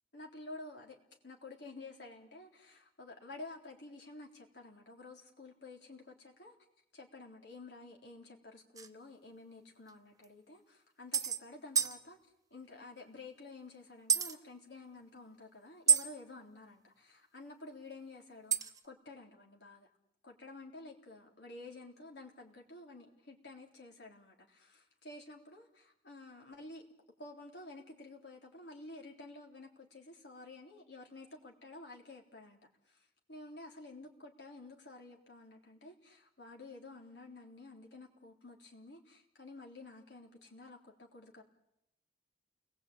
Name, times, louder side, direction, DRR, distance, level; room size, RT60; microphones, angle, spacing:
voice 1, 0.1-1.0 1.2-6.6 6.9-12.2 12.5-19.9 20.2-26.8 27.2-32.6 32.9-41.4, left 2 dB, 70° left, 0 dB, 3.6 m, -51 dB
sound 1, 8.8-8.9 9.9-10.0 10.2-10.3 11.1-11.4 11.8-12.0 14.1-14.4 15.9-16.1 18.5-18.8, right 7 dB, 20° right, 0.9 m, -28 dB
30.0 x 20.5 x 8.8 m, 0.83 s
head